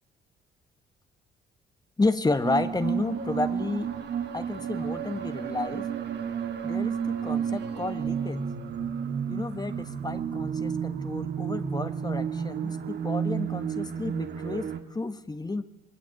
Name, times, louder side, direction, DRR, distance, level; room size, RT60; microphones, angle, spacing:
voice 1, 2.0-4.0 4.3-5.9 6.6-8.4 9.3-15.6, left 3 dB, 20° left, 10 dB, 1.5 m, -31 dB
sound 1, 2.4-14.8, right 7 dB, 60° right, 2.3 m, -31 dB
27.5 x 20.0 x 8.2 m, 1.0 s
cardioid pair, 90°, 20 cm